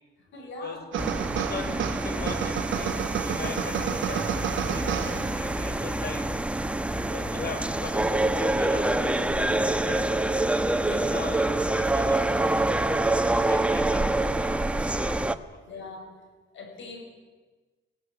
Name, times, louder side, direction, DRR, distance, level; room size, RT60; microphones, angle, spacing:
voice 1, 0.3-0.8 4.8-5.1 9.7-9.8 10.9-11.3 15.7-16.2 16.5-17.0, left 2 dB, 70° left, 4 dB, 6.2 m, -42 dB
sound 1, 0.9-5.7, right 12 dB, 80° right, 0.9 m, -32 dB
sound 2, 1.0-15.4, right 2 dB, 5° right, 1.1 m, -26 dB
voice 2, 1.3-6.2 7.1-9.3 9.5-10.2 10.9-14.0 14.4-14.9 15.5-15.8, left 4 dB, 55° left, 6 dB, 5.1 m, -40 dB
19.0 x 17.5 x 9.9 m, 1.3 s
cardioid pair, 90°, 20 cm